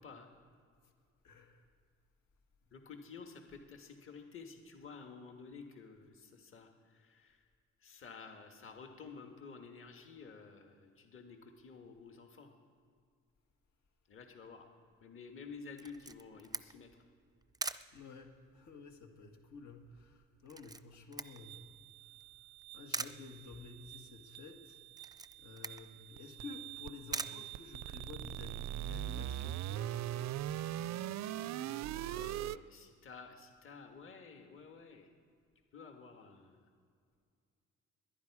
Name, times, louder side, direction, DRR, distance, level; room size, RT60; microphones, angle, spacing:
voice 1, 1.2-1.7 17.9-21.8 22.7-24.8 25.4-30.3, left 4 dB, 75° left, 3 dB, 1.8 m, -51 dB
voice 2, 2.7-7.4 7.8-12.5 14.1-14.7 15.0-16.9 32.0-35.1 35.7-36.6, left 5 dB, 45° left, 4 dB, 1.6 m, -52 dB
Camera, 15.8-28.3, right 3 dB, 15° right, 0.5 m, -46 dB
sound 1, 21.2-32.6, right 13 dB, 65° right, 0.5 m, -42 dB
21.5 x 10.0 x 4.8 m, 2.2 s
cardioid pair, 90°, 30 cm